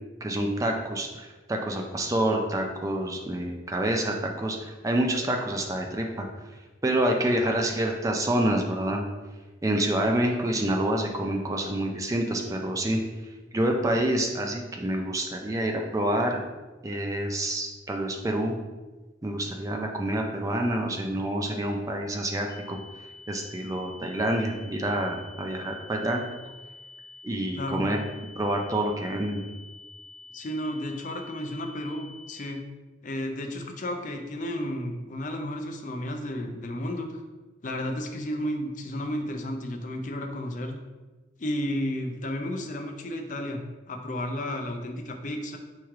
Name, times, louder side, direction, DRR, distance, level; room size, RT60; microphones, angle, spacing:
voice 1, 0.2-6.3 6.8-9.0 9.6-13.0 13.5-16.4 16.8-18.6 19.2-22.8 23.3-26.2 27.2-28.0 28.4-29.5, right 1 dB, 15° right, 2 dB, 0.4 m, -27 dB
sound 1, 22.5-32.5, left 4 dB, 75° left, 1.2 m, -48 dB
voice 2, 27.5-27.9 30.3-32.6 33.0-37.1 37.6-40.8 41.4-45.6, left 1 dB, 40° left, 4 dB, 0.5 m, -32 dB
4.6 x 3.1 x 3.6 m, 1.2 s
head